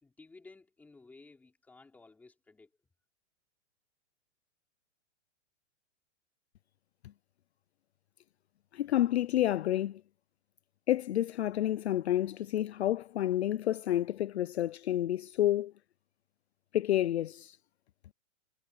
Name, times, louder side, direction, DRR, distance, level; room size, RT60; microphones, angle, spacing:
voice 1, 0.0-2.7, left 3 dB, 5° left, 3.5 m, -56 dB
voice 2, 8.7-10.0 10.9-15.7 16.7-17.6, left 13 dB, 60° left, 0.6 m, -29 dB
hypercardioid pair, 180°, 37 cm